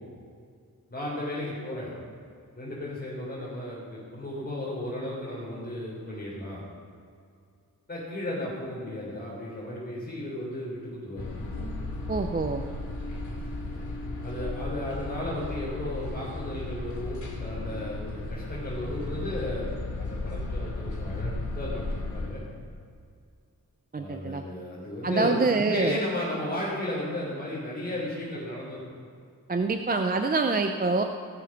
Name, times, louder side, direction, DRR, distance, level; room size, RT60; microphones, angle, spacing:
voice 1, 0.9-1.9 2.5-6.6 7.9-11.2 14.2-22.4 23.9-28.8, left 1 dB, 30° left, -8 dB, 3.9 m, -34 dB
sound 1, 11.2-22.3, left 2 dB, 55° left, 2.7 m, -35 dB
voice 2, 12.1-12.6 23.9-24.4 25.0-26.0 29.5-31.0, right 3 dB, 25° right, 5 dB, 0.6 m, -25 dB
18.5 x 7.2 x 6.0 m, 2.3 s
wide cardioid pair, 135°, 35 cm